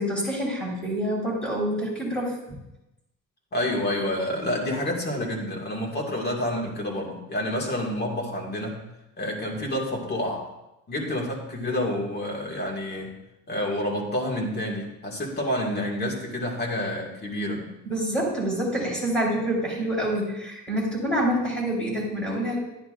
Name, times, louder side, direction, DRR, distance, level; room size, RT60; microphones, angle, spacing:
voice 1, 0.0-2.6 17.8-22.6, right 1 dB, 5° left, -5 dB, 4.1 m, -27 dB
voice 2, 3.5-8.8 9.2-10.5 10.9-13.1 13.5-17.7, left 1 dB, 30° left, -1 dB, 2.1 m, -28 dB
11.5 x 10.5 x 2.5 m, 0.93 s
cardioid pair, 150°, 32 cm